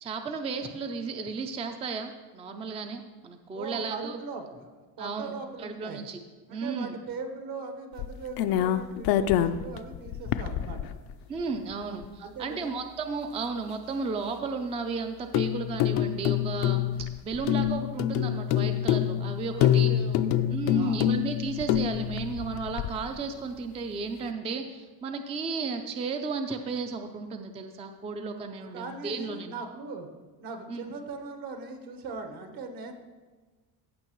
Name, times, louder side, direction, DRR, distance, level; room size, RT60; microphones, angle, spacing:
voice 1, 0.0-4.2 5.0-5.3 5.6-6.2 6.5-6.9 11.3-16.9 17.2-19.9 20.5-29.5 30.7-30.8, right 4 dB, 15° right, 6 dB, 0.3 m, -34 dB
voice 2, 3.5-6.0 6.5-11.0 11.9-12.7 19.4-21.1 28.6-30.1 30.4-32.9, right 4 dB, 65° right, 6 dB, 1.3 m, -40 dB
sound 1, 8.0-11.1 11.7-11.8 12.0-12.1 15.3-23.1, left 11 dB, 65° left, 0.5 m, -26 dB
14.5 x 6.2 x 3.0 m, 1.3 s
cardioid pair, 145°, 39 cm